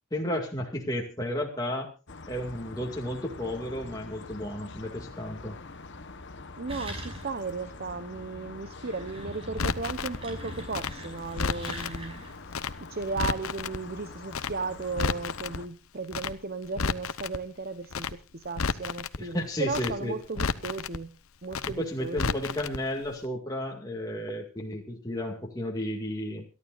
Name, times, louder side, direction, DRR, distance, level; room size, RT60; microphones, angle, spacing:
voice 1, 0.1-1.9 2.3-5.6 19.2-20.2 21.8-26.4, left 1 dB, 15° left, 0 dB, 2.2 m, -33 dB
sound 1, 2.1-15.7, left 3 dB, 55° left, 1.2 m, -45 dB
voice 2, 6.6-12.2 12.8-21.1 21.4-22.4, right 4 dB, 45° right, 11 dB, 0.9 m, -35 dB
sound 2, 6.7-7.5 7.9-8.0 8.6-12.4, equal, 25° right, 5.7 m, -42 dB
Crackle, 9.6-10.2 10.7-12.0 12.5-12.7 13.0-13.8 14.3-14.5 14.8-15.6 16.1-16.3 16.6-17.4 17.9-18.1 18.4-19.2 19.7-19.9 20.2-21.0 21.5-21.7 22.0-22.8 23.0-23.2, left 5 dB, 75° left, 0.9 m, -31 dB
27.5 x 12.0 x 2.5 m, 0.32 s
head